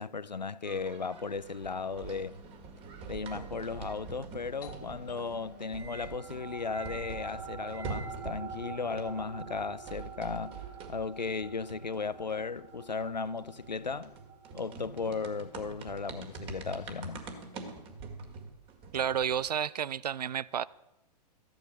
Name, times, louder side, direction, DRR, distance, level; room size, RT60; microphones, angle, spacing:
voice 1, 0.0-2.4 3.1-10.6 10.9-14.1 14.5-17.2, left 4 dB, 90° left, 0.5 m, -36 dB
sound 1, 0.6-8.6 8.9-19.5, right 4 dB, 25° right, 1.9 m, -45 dB
Doorbell, 4.6-10.0, left 6 dB, 65° left, 1.3 m, -57 dB
sound 2, 6.0-16.8, right 6 dB, 50° right, 3.5 m, -47 dB
voice 2, 18.9-20.6, right 8 dB, 70° right, 0.5 m, -31 dB
14.5 x 11.0 x 5.4 m
figure-of-eight pair, 110°, 21 cm